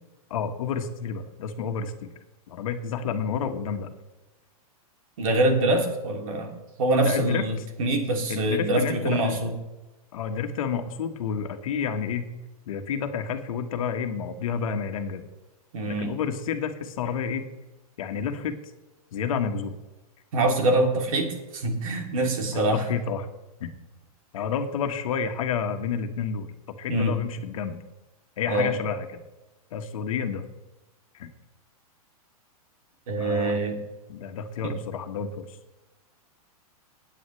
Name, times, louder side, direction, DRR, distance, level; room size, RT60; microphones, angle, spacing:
voice 1, 0.3-2.1 2.5-3.9 7.0-7.4 8.3-9.5 10.1-12.3 12.7-15.3 15.9-17.5 18.0-18.6 19.1-19.7 22.5-23.3 23.6-23.7 24.3-26.5 26.8-27.8 28.4-29.2 29.7-30.4 31.1-31.3 33.2-33.6 34.1-35.4, left 6 dB, 65° left, 6 dB, 1.5 m, -30 dB
voice 2, 5.2-6.5 6.8-9.5 15.7-16.1 20.3-22.8 26.9-27.1 28.5-28.7 33.1-33.8 34.6-34.7, right 2 dB, 65° right, 3 dB, 3.0 m, -24 dB
20.0 x 9.0 x 3.3 m, 1.1 s
supercardioid pair, 160°, 19 cm